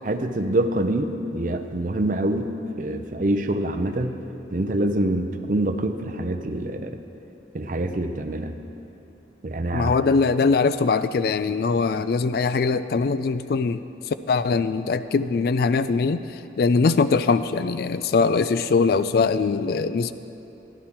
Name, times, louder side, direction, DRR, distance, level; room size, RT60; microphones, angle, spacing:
voice 1, 0.0-4.2 4.5-7.0 7.5-8.6 9.4-9.9, right 1 dB, 45° right, 7 dB, 0.6 m, -25 dB
voice 2, 9.7-13.8 14.3-20.1, left 4 dB, 55° left, 13 dB, 0.3 m, -22 dB
12.0 x 11.0 x 4.3 m, 2.8 s
head